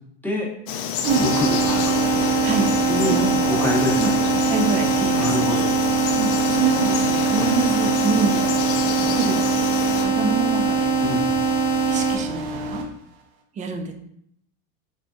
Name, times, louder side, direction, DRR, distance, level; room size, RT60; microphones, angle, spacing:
Frog, 0.7-10.1, left 7 dB, 50° left, 0.4 m, -28 dB
sound 1, 1.0-12.8, left 1 dB, 90° right, 0.8 m, -29 dB
sound 2, 1.1-12.2, right 5 dB, 85° left, 0.9 m, -22 dB
voice 1, 1.2-2.0 2.9-4.4 5.2-5.8 7.3-7.5 11.0-11.3, left 2 dB, 5° left, -3 dB, 0.8 m, -26 dB
voice 2, 2.4-3.2 4.0-4.1 4.5-5.6 6.2-8.5 9.0-9.5 10.0-10.9 11.9-12.8 13.5-13.9, right 4 dB, 25° right, 4 dB, 0.4 m, -26 dB
3.5 x 3.3 x 2.5 m, 0.72 s
supercardioid pair, 125°, 30 cm